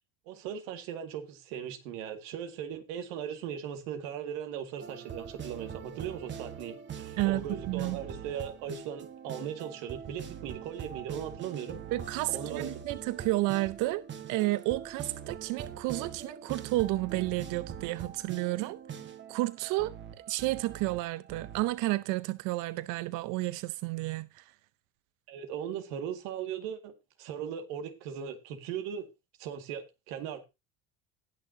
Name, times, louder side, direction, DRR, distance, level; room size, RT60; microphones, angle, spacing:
voice 1, 0.3-11.8 12.3-12.7 25.3-26.9 27.2-29.1 29.4-30.4, right 8 dB, 80° right, 2.2 m, -38 dB
sound 1, 4.8-21.6, right 7 dB, 35° right, 1.5 m, -43 dB
voice 2, 7.2-8.0 11.9-14.0 14.3-18.8 19.3-19.9 20.3-24.4, right 19 dB, 65° right, 0.7 m, -31 dB
19.0 x 6.5 x 2.8 m
supercardioid pair, 110°, 34 cm